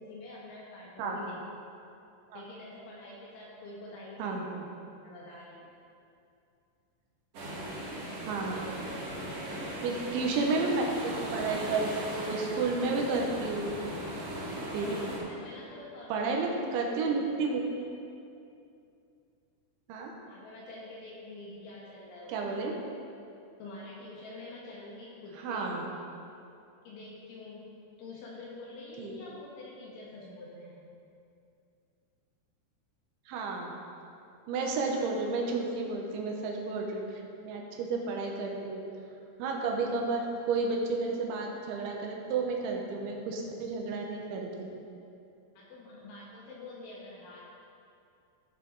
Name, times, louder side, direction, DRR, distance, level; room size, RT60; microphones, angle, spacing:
voice 1, 0.0-1.4 2.3-4.7 5.0-5.7 8.5-9.9 14.8-16.5 20.3-22.8 23.6-25.9 26.9-27.7 28.0-30.9 34.9-35.0 45.6-47.4, left 2 dB, 75° left, -5 dB, 4.0 m, -46 dB
sound 1, 7.3-15.2, right 1 dB, 45° right, 2.3 m, -38 dB
voice 2, 8.3-8.6 9.8-13.8 14.7-15.0 16.1-17.6 19.9-20.1 22.3-22.7 25.4-25.8 29.0-29.1 33.3-33.7 34.5-38.8 39.4-44.7, right 3 dB, 75° right, 1 dB, 3.2 m, -31 dB
16.0 x 8.2 x 4.0 m, 2.6 s
omnidirectional pair, 5.7 m